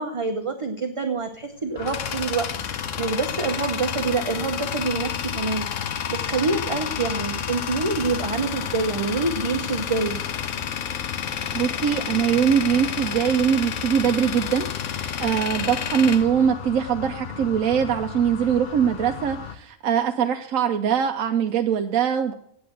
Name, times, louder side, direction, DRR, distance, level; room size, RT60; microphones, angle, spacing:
voice 1, 0.0-10.2, right 3 dB, 25° right, 5 dB, 0.8 m, -26 dB
Tools, 1.3-17.2, left 8 dB, 70° left, 1.1 m, -31 dB
sound 1, 1.7-19.5, left 7 dB, 45° left, 0.8 m, -36 dB
voice 2, 11.5-22.3, right 8 dB, 85° right, 5 dB, 1.2 m, -22 dB
8.6 x 8.4 x 7.7 m, 0.71 s
omnidirectional pair, 1.4 m